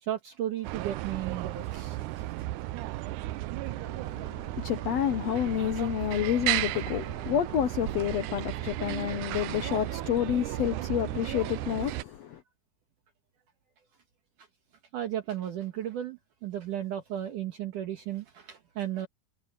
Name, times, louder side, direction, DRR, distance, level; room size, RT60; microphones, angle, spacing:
voice 1, 0.0-2.3 5.8-5.9 14.4-14.5 14.9-19.1, right 11 dB, 65° right, 2.9 m, -35 dB
sound 1, 0.6-12.0, right 17 dB, 90° right, 1.7 m, -34 dB
voice 2, 3.6-12.4, left 10 dB, 80° left, 1.4 m, -29 dB
omnidirectional pair, 4.3 m